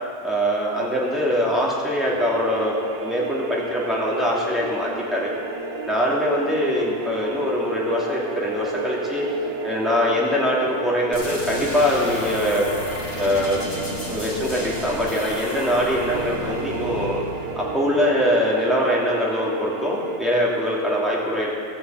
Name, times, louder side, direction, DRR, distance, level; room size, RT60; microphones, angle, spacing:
voice 1, 0.2-2.8 3.0-5.3 5.9-9.3 9.6-12.7 13.1-13.6 14.1-17.2 17.6-21.5, equal, ahead, -6 dB, 2.7 m, -23 dB
sound 1, 2.1-20.2, right 4 dB, 80° right, 1.6 m, -32 dB
sound 2, 11.1-18.7, left 2 dB, 55° left, 2.6 m, -34 dB
13.5 x 7.7 x 8.4 m, 2.2 s
omnidirectional pair, 1.5 m